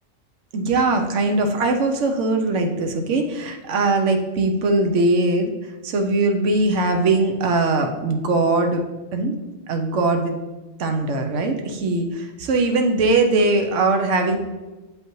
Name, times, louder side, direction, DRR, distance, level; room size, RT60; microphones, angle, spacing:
voice 1, 0.5-8.8 9.1-9.3 9.7-10.4 10.8-14.4, right 2 dB, 90° right, 4 dB, 1.1 m, -21 dB
7.9 x 5.5 x 3.0 m, 1.1 s
omnidirectional pair, 1.2 m